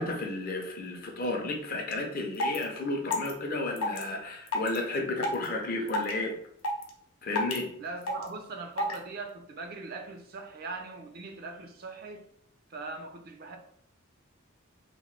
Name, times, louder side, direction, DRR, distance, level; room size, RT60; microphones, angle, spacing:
voice 1, 0.0-6.3 7.2-7.7, left 2 dB, 45° left, 2 dB, 0.5 m, -32 dB
sound 1, 1.9-2.0 2.3-2.6 3.1-3.3 3.8-4.0 4.5-4.8 5.2-5.5 5.9-6.1 6.6-6.9 7.4-7.6 8.1-8.3 8.8-9.0, left 2 dB, 90° left, 0.6 m, -29 dB
voice 2, 7.8-12.3 12.7-13.6, right 3 dB, 45° right, 5 dB, 0.4 m, -40 dB
2.9 x 2.1 x 3.1 m, 0.68 s
head